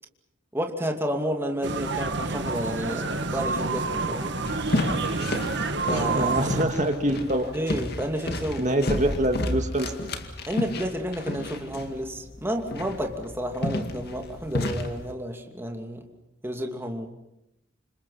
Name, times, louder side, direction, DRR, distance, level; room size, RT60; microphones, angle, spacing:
voice 1, 0.5-4.3 5.9-6.3 7.5-8.8 10.5-16.0 16.4-17.1, equal, 10° right, 3 dB, 2.6 m, -31 dB
sound 1, 1.6-6.6, right 3 dB, 60° right, 2.0 m, -28 dB
sound 2, 4.4-15.1, left 1 dB, 55° left, 2.2 m, -32 dB
voice 2, 6.1-7.6 8.6-9.9, right 1 dB, 40° right, 4 dB, 1.8 m, -25 dB
29.0 x 27.0 x 5.8 m, 0.88 s
head